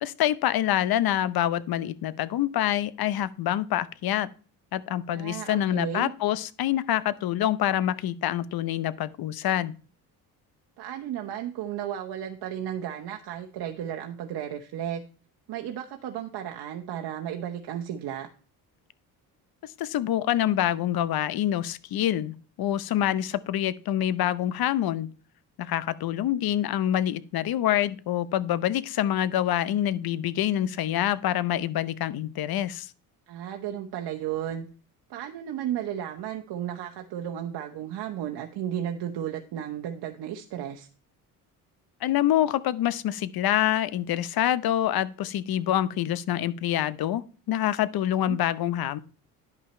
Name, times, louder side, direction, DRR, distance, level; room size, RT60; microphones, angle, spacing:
voice 1, 0.0-4.3 4.7-9.7 19.6-25.1 25.6-32.9 42.0-49.0, left 12 dB, 55° left, 17 dB, 0.8 m, -26 dB
voice 2, 5.1-6.1 10.8-15.0 15.5-18.3 33.3-34.7 35.1-40.9 48.1-48.4, right 10 dB, 60° right, 3 dB, 1.1 m, -34 dB
10.5 x 5.6 x 4.3 m, 0.39 s
supercardioid pair, 65°, 44 cm